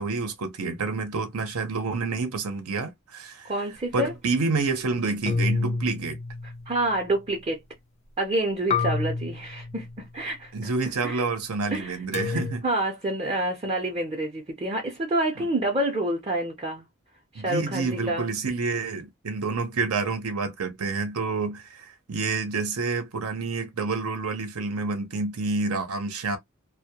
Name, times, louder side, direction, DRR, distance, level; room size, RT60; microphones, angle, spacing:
voice 1, 0.0-3.5 3.9-6.2 10.5-12.6 15.4-15.5 17.3-26.4, right 4 dB, 80° right, 0.7 m, -28 dB
voice 2, 3.4-4.1 6.7-7.6 8.2-10.7 11.0-11.2 11.7-12.0 12.3-16.9 17.3-18.3, right 1 dB, 25° right, 0.6 m, -28 dB
sound 1, 5.3-7.0 8.7-10.1 12.1-12.6, left 4 dB, 30° left, 0.4 m, -28 dB
2.2 x 2.1 x 2.8 m
head